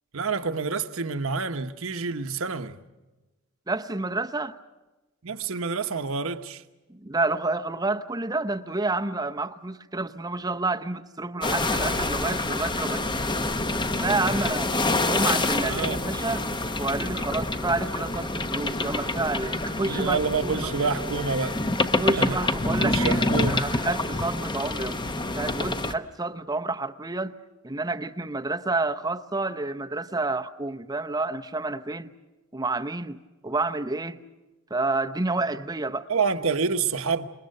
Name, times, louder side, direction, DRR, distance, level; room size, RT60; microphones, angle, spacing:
voice 1, 0.1-2.8 5.2-6.6 15.6-16.0 19.8-21.6 22.2-22.4 22.8-23.7 36.1-37.2, right 4 dB, 65° right, 1.1 m, -28 dB
voice 2, 3.7-4.6 6.9-13.0 13.5-13.6 13.9-14.7 15.0-16.5 16.8-20.7 22.0-25.0 25.3-27.4 27.6-32.1 32.5-34.2 34.7-36.1, right 2 dB, 15° right, 0.7 m, -29 dB
sound 1, 11.4-25.9, left 2 dB, 20° left, 0.8 m, -27 dB
27.5 x 21.5 x 6.6 m
head